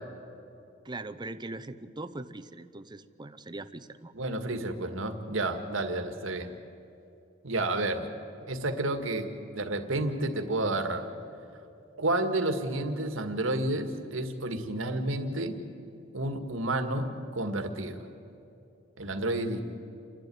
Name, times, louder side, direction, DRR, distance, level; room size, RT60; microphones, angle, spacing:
voice 1, 0.8-4.1, right 2 dB, 20° right, 11 dB, 0.8 m, -41 dB
voice 2, 4.1-6.5 7.4-8.1 8.5-9.3 9.5-11.1 12.0-15.5 16.1-18.0 19.0-19.6, right 2 dB, 85° right, 6 dB, 1.9 m, -30 dB
29.0 x 12.0 x 9.3 m, 2.9 s
head